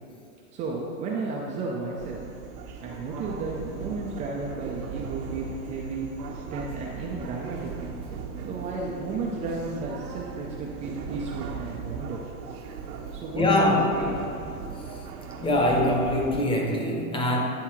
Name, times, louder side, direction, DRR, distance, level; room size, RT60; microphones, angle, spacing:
voice 1, 0.5-2.2 2.7-6.1 6.5-7.7 8.4-12.2 13.1-14.5, right 3 dB, 20° right, -3 dB, 0.3 m, -33 dB
sound 1, 2.0-16.4, right 5 dB, 80° right, 1.0 m, -38 dB
voice 2, 13.3-14.0 14.9-15.0 15.4-17.4, left 1 dB, 10° left, 0 dB, 0.9 m, -23 dB
10.0 x 3.5 x 4.5 m, 2.7 s
hypercardioid pair, 120°, 44 cm